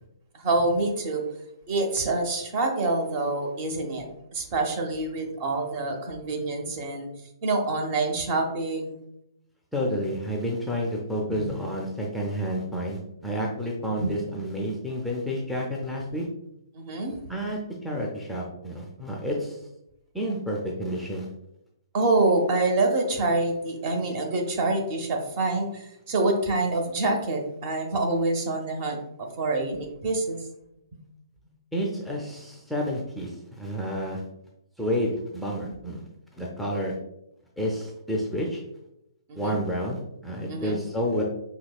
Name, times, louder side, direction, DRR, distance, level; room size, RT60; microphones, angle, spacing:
voice 1, 0.3-1.3 1.7-7.1 7.4-9.0 11.3-11.6 14.0-14.1 16.7-17.2 21.9-30.5 30.9-31.0 39.3-39.6 40.5-40.8, right 2 dB, 35° right, 3 dB, 0.8 m, -26 dB
voice 2, 9.7-16.3 17.3-19.6 20.1-21.3 31.7-34.2 34.8-36.0 36.4-37.0 37.6-38.6 39.3-41.2, equal, ahead, -2 dB, 0.5 m, -30 dB
5.7 x 2.9 x 2.3 m, 0.82 s
figure-of-eight pair, 125°, 2 cm